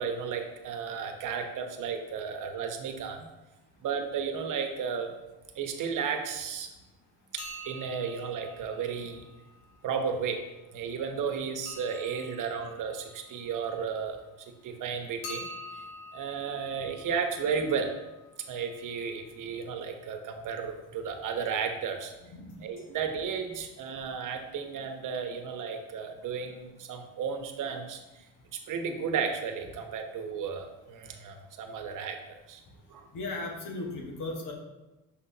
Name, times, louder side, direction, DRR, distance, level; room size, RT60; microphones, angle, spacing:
voice 1, 0.0-3.3 3.8-5.1 5.5-6.7 7.3-9.2 9.8-10.4 10.7-15.4 16.1-17.9 18.5-22.1 22.6-28.3 28.7-32.6 32.9-33.1, right 6 dB, 55° right, 5 dB, 1.1 m, -33 dB
sound 1, 7.4-10.1 11.7-14.3 15.2-19.1 22.5-22.9 23.1-23.2 24.0-24.1 24.3-24.4, left 1 dB, 85° left, 1.5 m, -47 dB
voice 2, 33.1-34.5, left 2 dB, 55° left, 1 dB, 1.5 m, -36 dB
6.3 x 5.6 x 2.8 m, 1.0 s
supercardioid pair, 90°, 38 cm